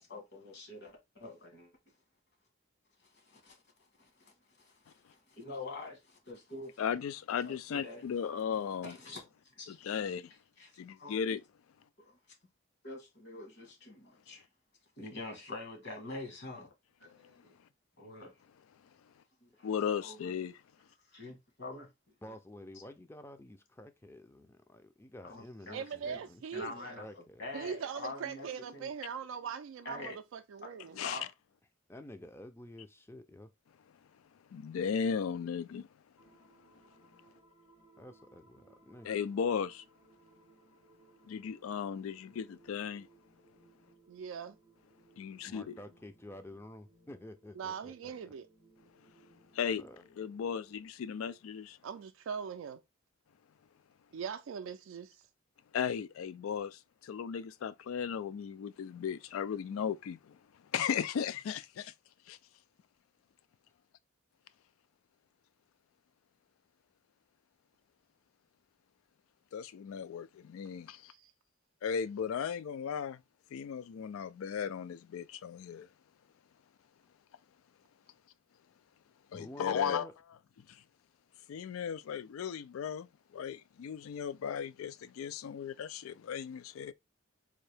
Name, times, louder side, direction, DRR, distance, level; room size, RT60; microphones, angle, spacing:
voice 1, 0.0-1.7 3.0-6.8 7.4-8.0 8.8-10.1 10.6-11.2 12.0-12.2 12.8-14.5 15.0-16.7 17.0-17.5 18.0-18.3 19.4-19.7 20.0-20.3 21.1-21.9 25.2-26.2 26.5-28.9 29.8-30.2 30.6-30.7 31.0-31.3, left 2 dB, 55° left, 1.4 m, -46 dB
voice 2, 6.8-9.0 9.7-10.3 10.8-11.4 19.6-20.6 31.0-31.2 34.5-35.9 39.0-39.8 41.3-43.1 45.2-45.7 49.5-49.8 50.2-51.8 55.7-60.4 60.7-61.9 62.3-62.4 69.5-71.1 71.8-73.2 73.5-75.9 79.3-80.1 80.7-80.8 81.5-83.1 83.3-86.9, left 7 dB, 85° left, 0.3 m, -36 dB
voice 3, 22.2-27.7 31.9-33.5 38.0-39.1 45.5-48.3 49.8-50.0 79.3-80.1, left 1 dB, 10° left, 0.4 m, -50 dB
voice 4, 25.7-27.0 27.5-31.0 44.1-44.6 47.6-48.5 51.8-52.8 54.1-55.3 71.1-71.3, right 7 dB, 75° right, 0.3 m, -41 dB
sound 1, 36.1-50.8, right 3 dB, 70° left, 2.1 m, -64 dB
3.8 x 2.7 x 3.3 m
head